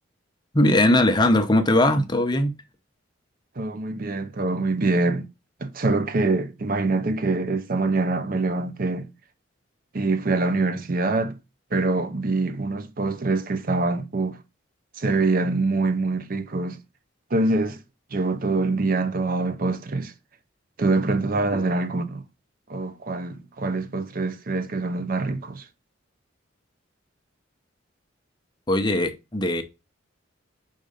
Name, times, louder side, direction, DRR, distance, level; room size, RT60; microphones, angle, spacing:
voice 1, 0.5-2.5 28.7-29.6, left 1 dB, 20° left, 0.8 m, -20 dB
voice 2, 3.6-5.3 5.6-9.1 9.9-11.4 11.7-14.4 15.0-16.8 17.3-17.8 18.1-20.1 20.8-22.2 22.7-25.7, right 3 dB, 45° right, 0.6 m, -24 dB
5.3 x 3.8 x 5.1 m
head